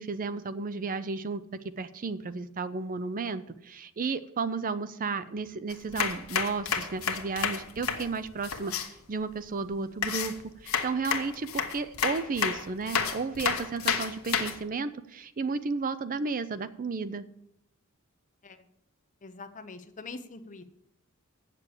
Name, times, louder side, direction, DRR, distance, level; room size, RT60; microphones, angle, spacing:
voice 1, 0.0-1.4 1.8-10.3 10.6-17.3, right 4 dB, 40° right, 13 dB, 0.5 m, -33 dB
sound 1, 5.7-8.9 10.0-14.6, left 6 dB, 70° left, 1.3 m, -30 dB
voice 2, 19.2-20.6, left 3 dB, 35° left, 9 dB, 0.8 m, -43 dB
8.4 x 6.8 x 8.5 m, 0.78 s
head